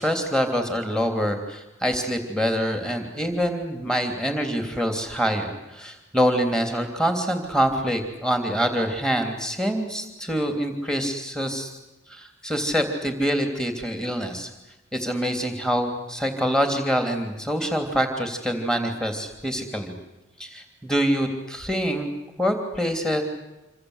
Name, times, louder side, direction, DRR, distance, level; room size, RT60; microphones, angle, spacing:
voice 1, 0.0-11.7 12.1-14.5 14.9-19.9 20.4-22.1 22.4-23.2, equal, 5° left, 5 dB, 3.1 m, -25 dB
27.5 x 26.0 x 8.1 m, 0.98 s
head